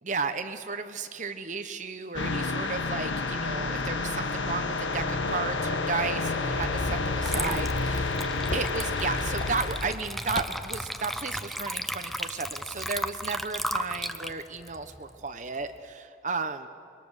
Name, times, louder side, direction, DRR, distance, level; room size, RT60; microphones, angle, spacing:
voice 1, 0.0-8.2 8.5-16.7, right 4 dB, 40° right, 8 dB, 0.9 m, -34 dB
sound 1, 2.1-9.9, left 3 dB, 80° left, 1.4 m, -29 dB
sound 2, 5.9-11.1, left 1 dB, 45° left, 1.7 m, -41 dB
Water / Liquid, 6.6-6.8 7.2-15.7, equal, ahead, 0.6 m, -35 dB
26.0 x 21.5 x 6.5 m, 2.4 s
head